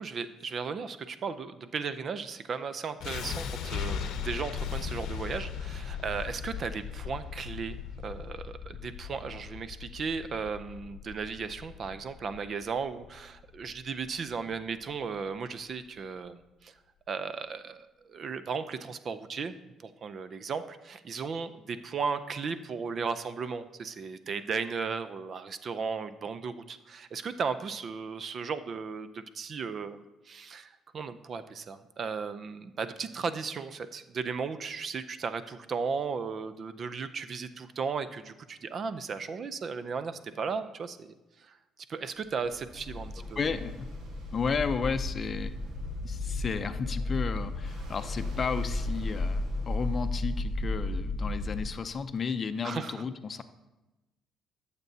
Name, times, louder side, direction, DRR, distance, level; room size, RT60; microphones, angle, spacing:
voice 1, 0.0-7.8 8.0-16.7 17.1-19.5 19.8-41.1 41.4-41.6 41.9-43.5 52.6-53.0, right 5 dB, 50° right, 12 dB, 0.5 m, -36 dB
sound 1, 3.0-15.0, left 7 dB, 75° left, 0.7 m, -38 dB
Ocean, 42.3-52.2, equal, 70° right, 1.5 m, -43 dB
sound 2, 42.8-51.7, left 2 dB, 20° left, 0.8 m, -34 dB
voice 2, 43.2-43.9 44.3-45.5 46.0-53.4, left 5 dB, 40° left, 10 dB, 0.5 m, -33 dB
13.5 x 6.7 x 2.8 m, 1.0 s
cardioid pair, 90°, 0 cm